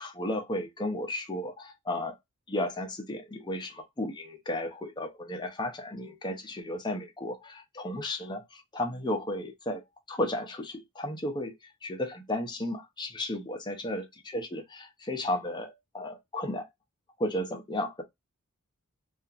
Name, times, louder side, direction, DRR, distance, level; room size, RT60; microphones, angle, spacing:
voice 1, 0.0-2.2 2.5-9.8 10.1-11.6 11.8-16.7 17.2-18.0, left 1 dB, 20° left, 0.6 m, -34 dB
2.8 x 2.4 x 2.4 m
head